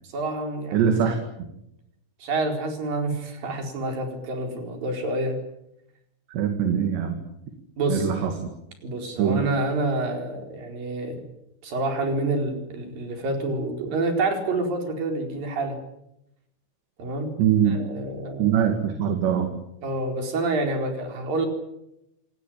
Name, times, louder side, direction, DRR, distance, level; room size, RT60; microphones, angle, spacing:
voice 1, 0.0-0.9 2.2-5.4 7.8-8.1 8.8-11.2 11.6-15.8 17.0-17.3 17.6-18.6 19.8-21.5, right 2 dB, 45° right, 4 dB, 5.9 m, -28 dB
voice 2, 0.7-1.2 6.3-7.2 7.9-8.3 9.2-9.4 17.4-17.8 18.4-19.5, right 8 dB, 65° right, 6 dB, 4.3 m, -22 dB
27.5 x 20.0 x 8.8 m, 0.83 s
omnidirectional pair, 5.6 m